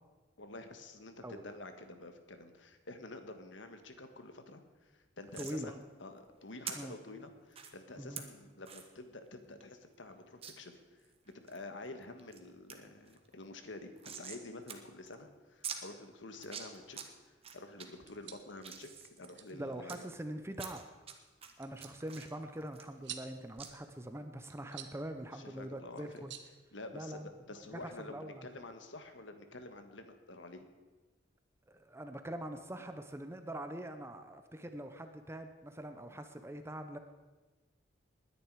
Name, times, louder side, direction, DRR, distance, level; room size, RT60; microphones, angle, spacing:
voice 1, 0.4-17.0 17.3-18.9 19.2-20.0 25.3-26.2 26.7-30.7, left 2 dB, 85° left, 7 dB, 1.6 m, -49 dB
sound 1, 5.3-5.6 6.7-6.8 7.5-7.7 8.2-8.3 8.7-8.9 9.3-9.4 9.6-9.7 10.4-10.5 11.0-11.6 12.0-12.4 12.7-12.8 13.1-14.4 14.7-14.8 15.1-15.2 15.6-15.8 16.3-17.1 17.4-17.9 18.3-20.0 20.5-21.1 21.4-23.3 23.6-23.7, right 7 dB, 30° right, 1.3 m, -45 dB
voice 2, 5.4-5.7 6.7-7.0 8.0-8.2 19.5-20.9 21.6-26.3 26.9-27.3 27.7-28.5 31.7-37.0, right 1 dB, 15° right, 7 dB, 0.8 m, -43 dB
sound 2, 17.9-27.4, right 10 dB, 75° right, 1.2 m, -54 dB
20.0 x 10.0 x 4.8 m, 1.2 s
head